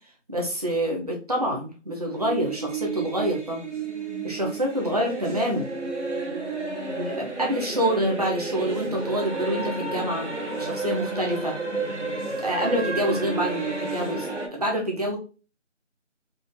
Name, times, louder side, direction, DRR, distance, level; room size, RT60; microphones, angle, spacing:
voice 1, 0.3-3.6 4.2-5.7 6.9-10.3 10.6-11.6 12.4-15.2, equal, 30° right, 0 dB, 0.9 m, -27 dB
sound 1, 2.1-14.5, right 3 dB, 70° right, 2.0 m, -31 dB
5.0 x 2.3 x 3.7 m, 0.34 s
figure-of-eight pair, 170°, 38 cm